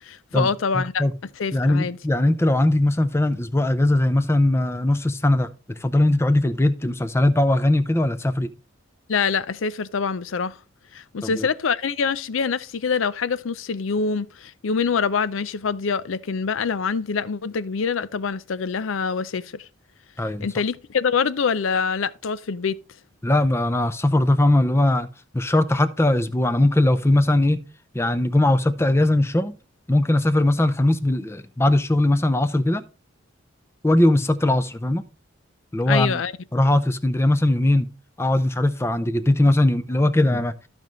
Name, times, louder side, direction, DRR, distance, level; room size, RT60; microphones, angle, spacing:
voice 1, 0.0-1.0 1.4-2.0 9.1-10.6 10.9-19.7 20.4-22.8 35.9-36.3, left 5 dB, 80° left, 0.5 m, -25 dB
voice 2, 0.7-1.1 1.5-8.5 11.2-11.5 20.2-20.5 23.2-25.1 25.3-27.6 27.9-29.6 29.9-32.8 33.8-35.0 35.7-36.2 36.5-37.9 38.2-40.5, left 1 dB, 15° left, 0.5 m, -20 dB
14.0 x 5.3 x 3.1 m
head